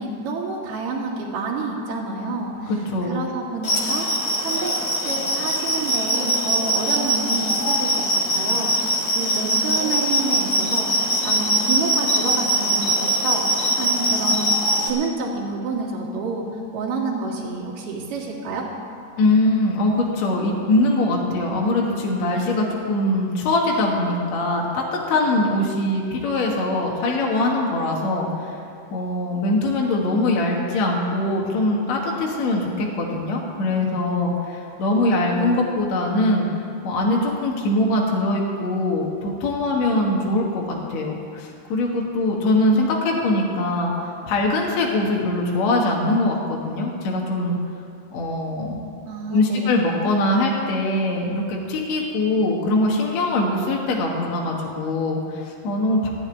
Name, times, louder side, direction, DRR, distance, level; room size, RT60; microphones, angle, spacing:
voice 1, 0.0-2.7 3.1-4.1 4.4-4.7 5.0-14.5 14.8-16.4 16.7-18.7 49.1-49.7, right 3 dB, 60° right, -2 dB, 3.1 m, -28 dB
voice 2, 2.7-3.2 19.2-28.6 28.9-36.5 36.8-40.6 40.9-47.6 48.1-48.9 49.3-56.1, left 2 dB, 60° left, -1 dB, 2.1 m, -22 dB
sound 1, 3.6-14.9, right 1 dB, 40° left, 1.8 m, -22 dB
14.0 x 7.0 x 9.8 m, 2.5 s
omnidirectional pair, 4.7 m